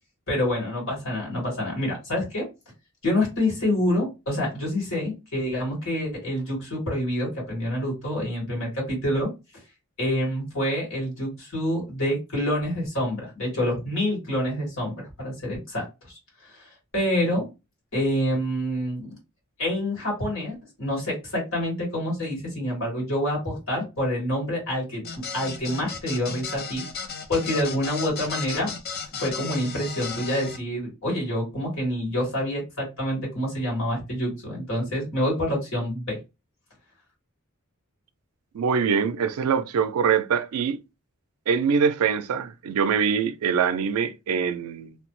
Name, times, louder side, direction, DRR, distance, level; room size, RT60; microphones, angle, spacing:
voice 1, 0.3-2.5 3.0-9.3 10.0-16.2 16.5-17.5 17.9-19.2 19.6-25.0 25.3-26.8 27.3-28.8 29.1-36.2, left 1 dB, 65° left, 1.8 m, -27 dB
sound 1, 25.0-30.6, left 5 dB, 45° left, 0.5 m, -35 dB
voice 2, 38.5-40.8 41.5-45.0, right 6 dB, 85° right, 0.4 m, -24 dB
3.1 x 2.0 x 3.0 m
head